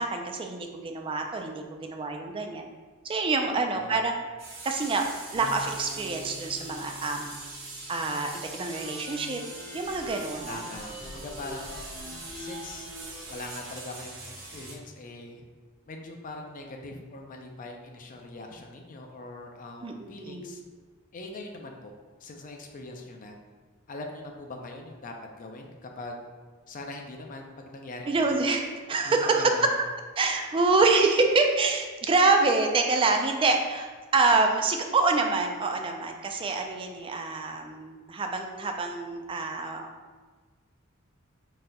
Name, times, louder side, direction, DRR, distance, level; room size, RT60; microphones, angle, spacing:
voice 1, 0.0-2.7 3.0-4.1 4.6-5.0 5.3-7.4 7.9-9.4 9.7-10.6 19.8-20.5 28.1-28.6 28.9-29.5 30.2-39.9, right 3 dB, 25° right, 4 dB, 0.3 m, -26 dB
voice 2, 3.5-4.0 10.5-11.8 12.3-12.9 13.3-15.5 15.9-20.6 21.1-21.9 22.2-23.4 23.9-26.2 26.7-28.1 29.0-29.7, left 2 dB, 40° left, 2 dB, 0.4 m, -42 dB
sound 1, 4.4-14.7, right 2 dB, 60° right, 1.1 m, -42 dB
sound 2, 5.3-9.5, right 1 dB, 55° left, 1.3 m, -46 dB
sound 3, 8.5-13.5, equal, 15° left, 1.1 m, -44 dB
4.1 x 3.7 x 2.2 m, 1.4 s
head